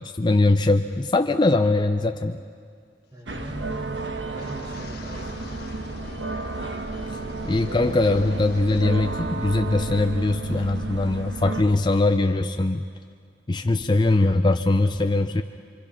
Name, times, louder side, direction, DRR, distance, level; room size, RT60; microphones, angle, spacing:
voice 1, 0.0-2.4 7.4-12.8 13.5-15.4, left 2 dB, 25° left, 6 dB, 0.5 m, -21 dB
voice 2, 3.1-5.7 7.0-7.7, right 1 dB, 20° right, 1 dB, 2.1 m, -41 dB
sound 1, 3.3-11.6, right 3 dB, 70° right, 1.4 m, -32 dB
Wind, 4.3-9.1 9.4-9.9 10.3-10.6, left 3 dB, 60° left, 1.4 m, -44 dB
26.0 x 26.0 x 5.8 m, 2.1 s
head